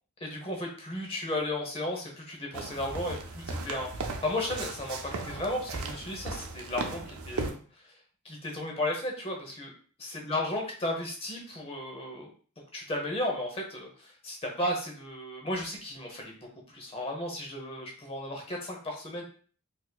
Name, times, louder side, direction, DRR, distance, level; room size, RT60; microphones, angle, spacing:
voice 1, 0.2-7.5 8.2-9.7 10.2-12.3 12.7-16.3 16.7-19.2, left 1 dB, 25° left, 0 dB, 0.8 m, -34 dB
sound 1, 2.5-7.5, right 3 dB, 80° right, 0.5 m, -37 dB
4.0 x 2.7 x 2.3 m, 0.43 s
head